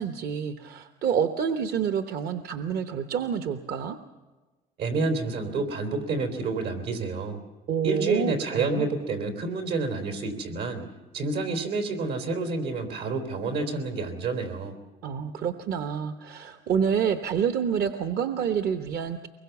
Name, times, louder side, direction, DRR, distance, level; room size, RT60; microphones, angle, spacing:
voice 1, 0.0-4.0 7.7-8.9 15.0-19.3, right 7 dB, 65° right, 8 dB, 1.0 m, -28 dB
voice 2, 4.8-7.4 7.8-10.9 11.1-14.7, right 3 dB, 90° right, 5 dB, 3.7 m, -29 dB
23.5 x 21.5 x 7.1 m, 1.3 s
cardioid pair, 110°, 17 cm